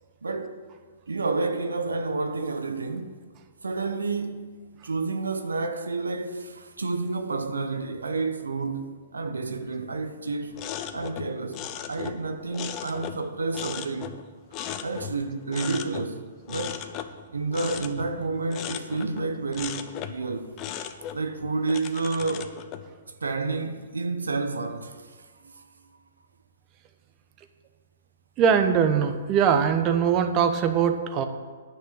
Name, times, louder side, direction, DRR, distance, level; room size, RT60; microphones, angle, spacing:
voice 1, 0.2-0.6 1.1-3.2 3.6-4.5 4.8-10.6 10.9-11.6 11.9-14.1 14.8-16.9 17.3-20.6 21.1-22.6 23.2-25.0 25.4-25.6, right 3 dB, 85° right, 1.0 m, -30 dB
sound 1, 10.5-13.3 13.5-15.3 15.5-16.1 16.5-19.3 19.5-20.2 20.6-22.9, left 10 dB, 30° left, 0.7 m, -37 dB
voice 2, 28.4-31.3, right 7 dB, 30° right, 1.0 m, -22 dB
10.0 x 6.0 x 8.7 m
hypercardioid pair, 120°, 0 cm